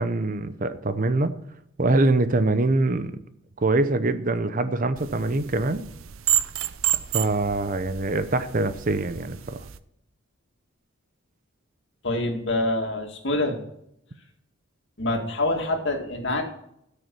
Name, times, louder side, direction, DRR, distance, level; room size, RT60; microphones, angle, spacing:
voice 1, 0.0-1.3 1.8-3.1 3.6-5.8 7.1-9.6, right 2 dB, 40° right, 12 dB, 0.7 m, -24 dB
sound 1, 5.0-9.8, right 13 dB, 80° right, 0.6 m, -30 dB
voice 2, 12.0-13.6 15.0-16.4, left 2 dB, 60° left, 2 dB, 2.3 m, -26 dB
13.0 x 6.6 x 6.2 m, 0.75 s
head